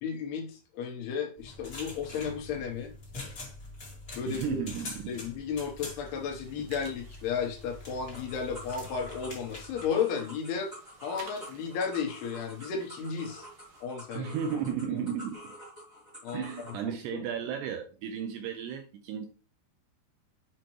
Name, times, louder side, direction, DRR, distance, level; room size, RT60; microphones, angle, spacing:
voice 1, 0.0-2.9 4.2-4.6 5.1-10.7 11.0-13.5 13.8-14.3 16.2-16.5 17.1-17.2, left 6 dB, 75° left, 2.6 m, -33 dB
sound 1, 1.4-9.9, left 2 dB, 40° left, 1.4 m, -45 dB
voice 2, 4.3-5.1 14.2-15.6 16.3-19.3, right 8 dB, 85° right, 2.4 m, -34 dB
sound 2, 6.0-13.8, right 5 dB, 65° right, 1.9 m, -55 dB
sound 3, 8.1-16.8, equal, 5° right, 2.1 m, -48 dB
7.7 x 5.0 x 3.0 m
omnidirectional pair, 5.3 m